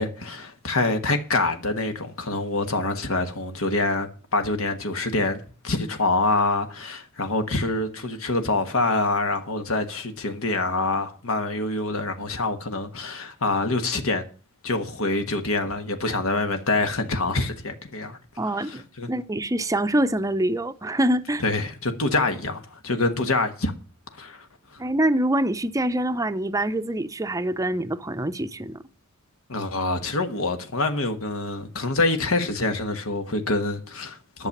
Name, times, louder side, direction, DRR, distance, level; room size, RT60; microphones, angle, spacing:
voice 1, 0.0-14.2 14.6-18.2 18.6-19.1 21.4-23.7 24.1-24.8 29.5-34.5, left 2 dB, 70° left, 1.4 m, -26 dB
voice 2, 18.4-18.8 19.1-21.4 24.8-28.8, right 1 dB, 15° right, 0.6 m, -25 dB
11.5 x 6.8 x 7.2 m
head